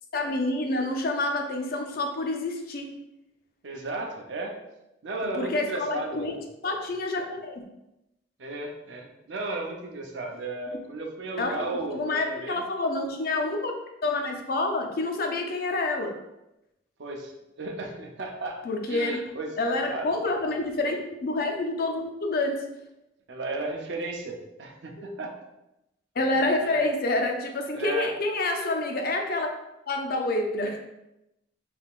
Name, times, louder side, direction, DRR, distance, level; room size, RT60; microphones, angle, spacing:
voice 1, 0.1-2.9 5.2-6.3 6.6-7.6 11.4-13.8 14.0-16.1 18.6-19.2 19.6-22.6 25.0-25.1 26.2-29.5 29.9-30.8, left 2 dB, 55° left, 3 dB, 0.5 m, -28 dB
voice 2, 3.6-4.6 5.0-6.3 8.4-12.6 17.0-18.6 18.9-19.6 19.8-20.1 23.3-25.3 26.6-26.8 27.7-28.1, right 2 dB, 90° right, 1 dB, 0.6 m, -34 dB
3.6 x 3.4 x 2.4 m, 0.90 s
head